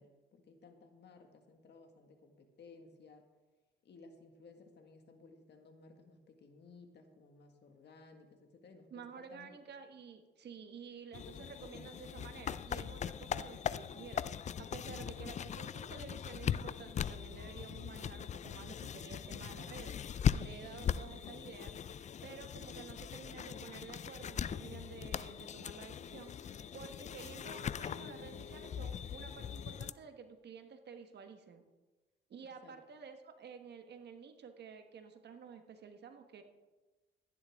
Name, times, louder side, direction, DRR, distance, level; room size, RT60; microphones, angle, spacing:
voice 1, 0.0-3.3 3.8-9.5 20.9-21.0 32.6-32.7, left 4 dB, 60° left, 5 dB, 1.8 m, -58 dB
voice 2, 8.9-31.6 32.3-36.4, right 6 dB, 60° right, 7 dB, 1.3 m, -51 dB
sound 1, 11.1-29.9, left 8 dB, 35° left, 0.4 m, -40 dB
15.5 x 10.5 x 3.6 m, 1.2 s
cardioid pair, 90°, 20 cm